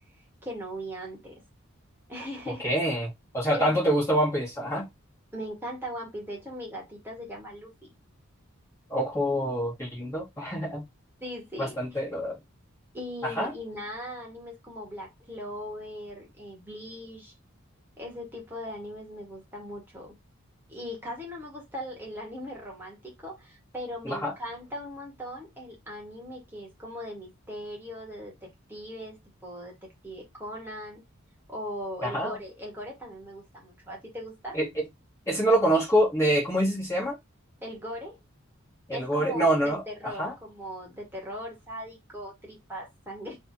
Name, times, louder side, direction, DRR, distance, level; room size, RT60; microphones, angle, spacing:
voice 1, 0.4-1.4 2.1-2.7 3.5-3.8 5.3-7.9 11.2-11.8 12.9-17.3 18.0-20.2 20.7-29.7 30.0-31.0 31.5-34.6 37.6-38.2 38.9-43.4, equal, 10° right, 1.8 m, -39 dB
voice 2, 2.6-4.9 8.9-10.8 11.6-12.4 13.4-13.5 24.1-24.3 32.0-32.4 34.5-34.7 35.3-37.2 38.9-39.8 40.2-40.3, right 1 dB, 15° left, 1.9 m, -25 dB
3.5 x 3.4 x 4.1 m
head